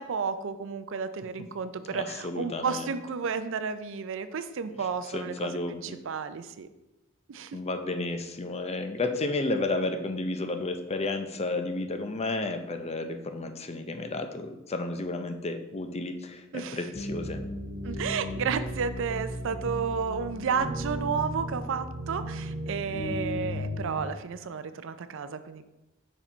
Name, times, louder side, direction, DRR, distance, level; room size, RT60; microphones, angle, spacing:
voice 1, 0.0-6.7 7.3-7.6 16.5-16.9 17.8-25.6, right 6 dB, 65° right, 11 dB, 0.4 m, -32 dB
voice 2, 2.2-2.9 5.1-6.0 7.5-17.4, left 2 dB, 30° left, 7 dB, 0.5 m, -32 dB
sound 1, 16.9-24.1, equal, 85° left, 1.5 m, -35 dB
5.4 x 4.9 x 4.4 m, 0.95 s
head